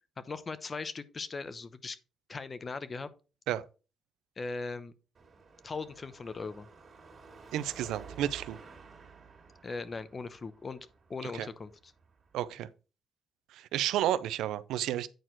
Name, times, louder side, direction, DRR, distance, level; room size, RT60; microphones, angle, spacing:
voice 1, 0.2-2.0 2.3-3.1 4.4-4.9 5.6-6.7 9.6-11.9, left 4 dB, 35° left, 0.8 m, -39 dB
Car passing by / Traffic noise roadway noise / Engine, 5.1-12.5, right 5 dB, 45° right, 2.2 m, -53 dB
voice 2, 7.5-8.6 11.3-11.5 12.3-12.7 13.5-15.1, right 12 dB, 85° right, 0.5 m, -31 dB
9.1 x 4.4 x 4.5 m
cardioid pair, 90°, 0 cm